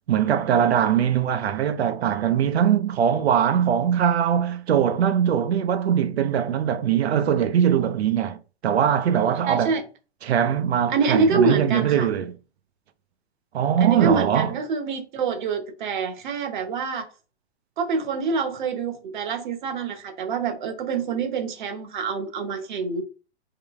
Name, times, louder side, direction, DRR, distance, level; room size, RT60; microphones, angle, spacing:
voice 1, 0.1-8.4 8.6-9.7 10.2-12.3 13.5-14.5, right 9 dB, 70° right, 0.6 m, -21 dB
voice 2, 9.4-9.8 10.9-12.1 13.8-17.1 17.8-23.0, right 4 dB, 45° right, 0.9 m, -26 dB
3.7 x 3.2 x 3.6 m
hypercardioid pair, 160°, 33 cm